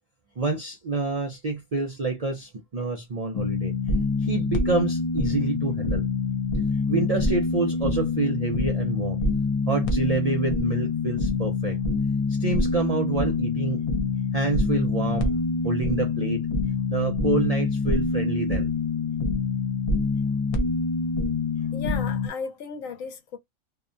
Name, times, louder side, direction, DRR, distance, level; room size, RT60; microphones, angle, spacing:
voice 1, 0.4-3.7 4.2-6.0 6.9-9.2 9.7-11.8 12.3-13.8 14.3-15.4 15.6-16.5 16.9-18.7, right 3 dB, 60° right, 0.4 m, -27 dB
sound 1, 3.3-22.3, left 3 dB, 45° left, 0.4 m, -26 dB
voice 2, 21.7-23.4, left 6 dB, 85° left, 1.1 m, -35 dB
2.8 x 2.1 x 2.4 m
omnidirectional pair, 1.4 m